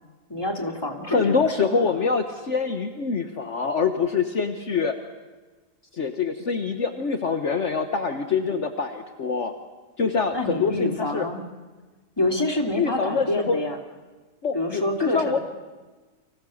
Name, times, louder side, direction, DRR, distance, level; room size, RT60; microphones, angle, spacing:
voice 1, 0.3-1.9 10.3-11.4 12.2-13.8 14.5-15.4, left 1 dB, 15° left, 3 dB, 2.8 m, -27 dB
voice 2, 1.1-4.9 5.9-9.5 10.0-11.3 12.8-13.6 14.4-15.4, left 5 dB, 55° left, 6 dB, 1.6 m, -25 dB
30.0 x 25.5 x 6.4 m, 1.3 s
omnidirectional pair, 1.5 m